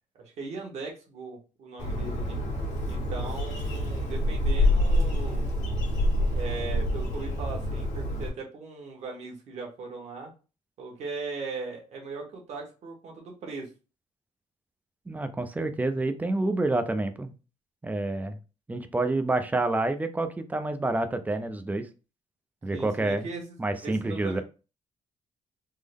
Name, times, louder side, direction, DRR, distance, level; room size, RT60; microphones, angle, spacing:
voice 1, 0.2-2.4 2.8-5.5 6.3-10.3 10.8-13.7 22.7-24.4, right 4 dB, 65° right, 0 dB, 1.3 m, -39 dB
Bird, 1.8-8.3, left 1 dB, 75° left, 1.2 m, -27 dB
voice 2, 15.1-17.3 17.8-18.4 18.7-21.9 22.6-23.3 23.6-24.4, right 2 dB, 15° right, 9 dB, 0.4 m, -28 dB
3.6 x 2.0 x 3.4 m, 0.33 s
cardioid pair, 125°, 13 cm